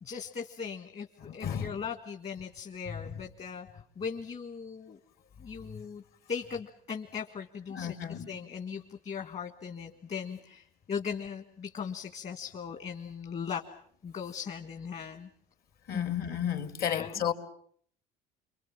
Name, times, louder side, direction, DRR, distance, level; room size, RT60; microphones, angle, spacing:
voice 1, 0.0-5.0 5.4-6.0 6.3-13.6 14.0-15.3 15.9-16.0 16.8-17.2, left 6 dB, 40° left, 1.7 m, -39 dB
voice 2, 1.2-1.7 2.9-3.2 7.7-8.3 15.9-17.3, left 9 dB, 60° left, 2.3 m, -33 dB
27.5 x 23.5 x 7.4 m
cardioid pair, 110°, 18 cm